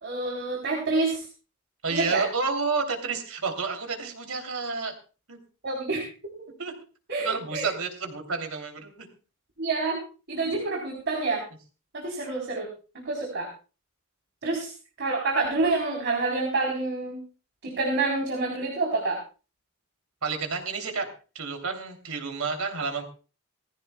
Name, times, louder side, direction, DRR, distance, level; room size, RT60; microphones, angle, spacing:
voice 1, 0.0-1.3 1.9-2.2 5.6-6.1 7.1-7.7 9.6-10.0 10.3-11.4 11.9-12.7 12.9-13.5 14.4-14.7 15.0-17.2 17.6-19.2, right 3 dB, 55° right, 0 dB, 3.7 m, -27 dB
voice 2, 1.8-4.9 5.3-5.4 6.6-6.7 7.2-9.1 20.2-21.1 21.3-23.0, right 4 dB, 80° right, 4 dB, 3.0 m, -30 dB
19.5 x 15.5 x 2.3 m, 0.35 s
head